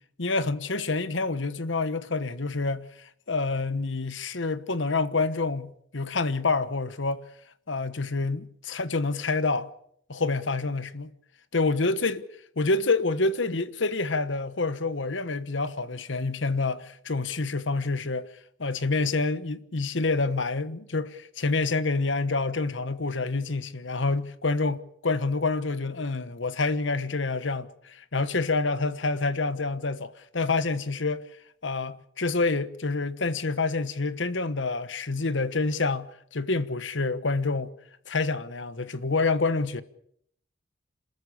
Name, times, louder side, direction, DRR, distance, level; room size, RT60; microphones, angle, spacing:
voice 1, 0.2-7.2 7.7-9.7 10.1-11.1 11.5-12.2 12.6-18.3 18.6-31.2 31.6-37.7 38.1-39.8, left 3 dB, 75° left, 1.2 m, -27 dB
27.5 x 13.5 x 8.6 m
head